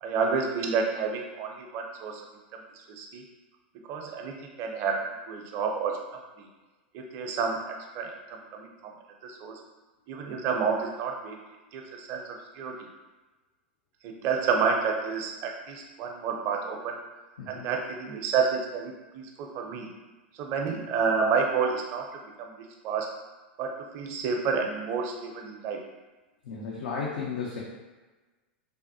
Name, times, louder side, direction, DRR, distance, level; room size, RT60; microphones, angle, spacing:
voice 1, 0.0-2.2 2.5-2.6 2.9-3.2 3.9-6.0 6.4-6.5 6.9-8.9 9.2-9.6 10.1-11.4 11.7-12.2 12.5-12.7 14.0-16.9 17.5-19.9 20.3-23.1 23.6-25.8, right 5 dB, 45° right, 2 dB, 0.5 m, -30 dB
voice 2, 17.4-17.7 26.4-27.6, left 5 dB, 65° left, -5 dB, 0.6 m, -34 dB
3.4 x 2.0 x 2.7 m, 1.2 s
hypercardioid pair, 95°, 6 cm